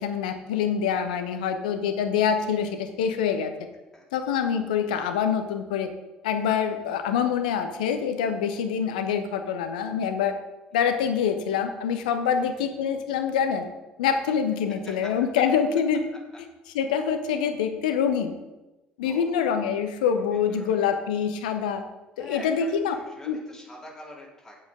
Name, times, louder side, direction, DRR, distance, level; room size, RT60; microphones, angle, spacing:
voice 1, 0.0-3.5 4.1-5.9 6.2-10.4 10.7-13.6 14.0-16.0 16.7-18.3 19.0-21.8 22.2-22.9 23.2-23.4, left 7 dB, 70° left, 8 dB, 0.9 m, -25 dB
voice 2, 3.9-4.2 10.7-10.8 12.3-12.6 15.0-15.1 19.0-19.5 20.3-21.0 22.2-24.6, left 1 dB, 10° left, -4 dB, 3.2 m, -45 dB
8.9 x 8.1 x 5.0 m, 1.1 s
figure-of-eight pair, 55°, 4 cm